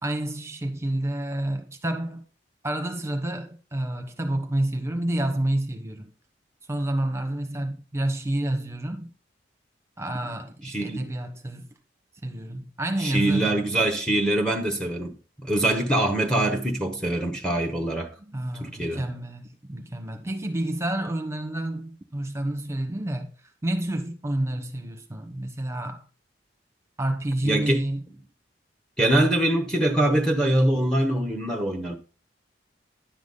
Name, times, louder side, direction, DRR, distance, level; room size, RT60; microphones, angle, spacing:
voice 1, 0.0-2.3 2.6-6.1 6.7-9.1 10.0-11.7 12.2-13.6 18.2-26.0 27.0-28.0, right 1 dB, 15° right, 1.1 m, -29 dB
voice 2, 10.7-11.0 13.0-15.1 15.4-18.1 18.6-19.0 27.4-27.8 29.0-32.0, right 1 dB, 5° left, 1.0 m, -23 dB
10.5 x 7.1 x 4.0 m
head